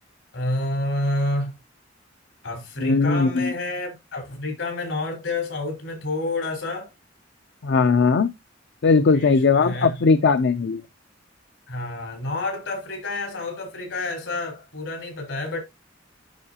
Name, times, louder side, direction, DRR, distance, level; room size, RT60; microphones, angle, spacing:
voice 1, 0.3-1.5 2.4-6.9 9.1-10.0 11.7-15.6, left 2 dB, 85° left, 4.5 m, -29 dB
voice 2, 2.8-3.5 7.6-8.3 8.8-10.8, left 4 dB, 60° left, 0.5 m, -19 dB
11.5 x 4.6 x 2.8 m
head